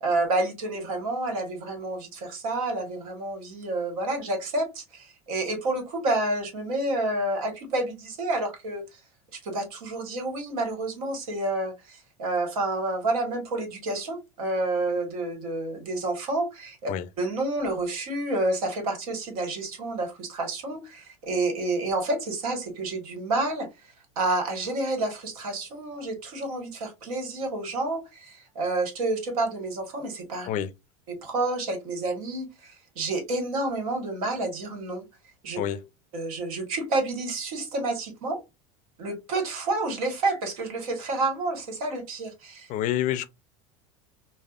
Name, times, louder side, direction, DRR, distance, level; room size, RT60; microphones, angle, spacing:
voice 1, 0.0-8.8 9.4-16.9 17.2-30.5 31.1-35.0 35.4-35.6 36.1-38.4 39.0-42.7, right 2 dB, 80° right, 1.4 m, -29 dB
voice 2, 42.7-43.3, left 11 dB, 45° left, 0.4 m, -27 dB
3.3 x 2.1 x 2.4 m
hypercardioid pair, 100°, 18 cm